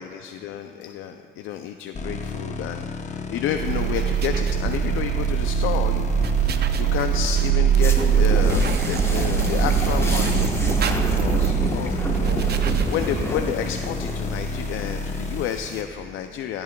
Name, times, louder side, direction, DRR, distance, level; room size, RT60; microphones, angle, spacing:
voice 1, 0.0-16.6, left 9 dB, 85° left, 7 dB, 0.4 m, -31 dB
sound 1, 1.9-15.5, left 3 dB, 35° left, 0.8 m, -31 dB
sound 2, 3.5-13.4, right 9 dB, 55° right, 0.6 m, -22 dB
sound 3, 7.8-15.8, left 1 dB, 15° left, 1.1 m, -29 dB
17.0 x 8.7 x 2.2 m, 2.3 s
cardioid pair, 90°, 20 cm